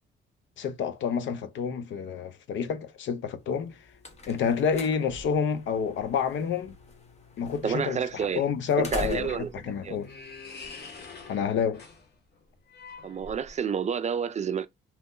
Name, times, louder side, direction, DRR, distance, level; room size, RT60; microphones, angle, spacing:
voice 1, 0.6-3.8 4.3-6.7 7.4-10.1 11.3-11.8, left 7 dB, 70° left, 0.7 m, -29 dB
sound 1, 3.5-11.0, left 1 dB, 35° left, 1.0 m, -44 dB
voice 2, 7.6-8.4 8.8-9.5 9.8-10.0 13.0-14.7, right 7 dB, 35° right, 0.4 m, -29 dB
sound 2, 9.2-13.8, left 4 dB, 55° left, 1.2 m, -46 dB
2.9 x 2.1 x 3.7 m
cardioid pair, 90°, 20 cm